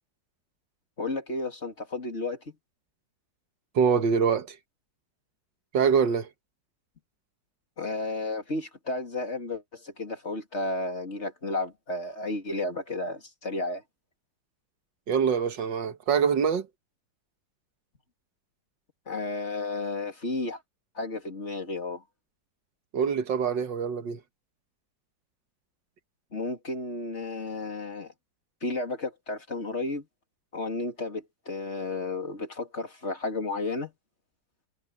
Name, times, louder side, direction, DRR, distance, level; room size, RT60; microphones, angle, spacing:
voice 1, 1.0-2.4 7.8-13.8 19.1-20.6 20.9-22.0 26.3-28.1 28.6-30.0 30.5-33.9, left 2 dB, 35° left, 3.1 m, -32 dB
voice 2, 3.8-4.6 5.7-6.3 15.1-16.7 22.9-24.2, right 6 dB, 75° right, 2.1 m, -24 dB
omnidirectional pair, 2.0 m